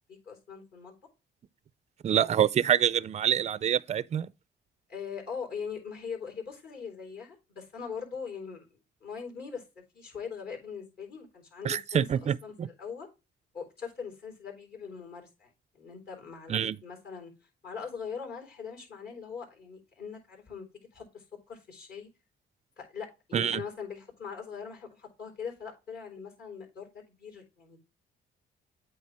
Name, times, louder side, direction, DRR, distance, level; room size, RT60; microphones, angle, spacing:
voice 1, 0.3-0.9 4.9-9.6 9.9-13.1 13.5-17.3 17.6-22.1 22.8-27.8, left 6 dB, 55° left, 3.7 m, -41 dB
voice 2, 2.0-4.3 11.6-12.7 16.5-16.8 23.3-23.6, right 9 dB, 35° right, 0.4 m, -26 dB
8.5 x 3.3 x 4.7 m
cardioid pair, 90°, 20 cm